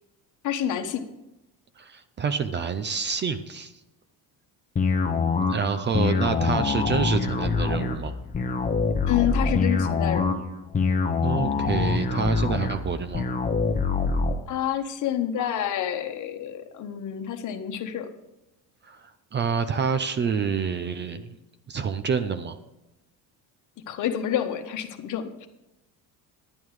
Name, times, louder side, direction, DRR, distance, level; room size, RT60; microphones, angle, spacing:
voice 1, 0.4-1.0 9.1-10.4 14.5-18.1 23.9-25.5, left 10 dB, 50° left, 7 dB, 1.2 m, -28 dB
voice 2, 1.8-3.7 5.5-8.1 11.2-13.3 18.8-21.4 21.7-22.6, right 6 dB, 30° right, 10 dB, 0.5 m, -27 dB
sound 1, 4.8-14.4, left 4 dB, 20° left, 1.0 m, -25 dB
10.5 x 9.3 x 4.8 m, 0.92 s
cardioid pair, 145°, 38 cm